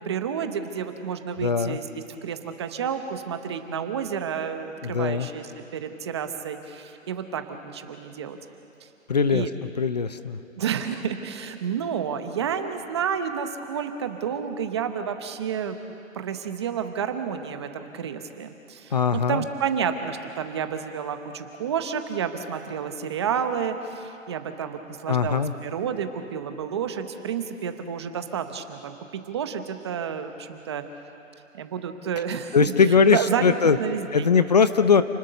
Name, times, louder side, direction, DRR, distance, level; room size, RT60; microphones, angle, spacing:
voice 1, 0.0-8.4 8.8-8.9 9.3-9.5 10.6-15.8 16.1-30.8 31.5-32.7 33.1-34.3, right 7 dB, 20° right, 8 dB, 0.9 m, -30 dB
voice 2, 1.4-1.8 4.8-5.3 9.1-9.5 9.8-10.4 18.9-19.4 25.1-25.5 32.5-33.8 34.1-35.0, left 5 dB, 30° left, 12 dB, 0.6 m, -20 dB
29.0 x 19.5 x 6.8 m, 2.8 s
hypercardioid pair, 160°, 39 cm